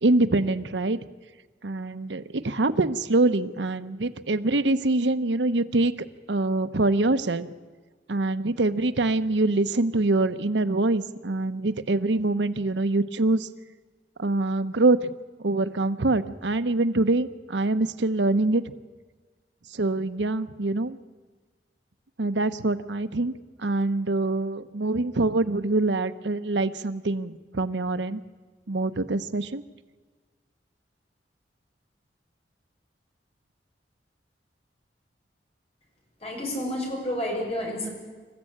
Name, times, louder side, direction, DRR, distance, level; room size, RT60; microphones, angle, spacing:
voice 1, 0.0-1.0 1.6-5.9 6.3-7.5 8.1-13.5 14.2-15.1 15.4-18.6 19.7-21.0 22.2-28.2 28.7-29.6, right 2 dB, 85° right, 12 dB, 0.9 m, -24 dB
voice 2, 36.2-37.9, left 1 dB, 35° left, 0 dB, 6.8 m, -30 dB
27.0 x 15.0 x 8.7 m, 1.4 s
head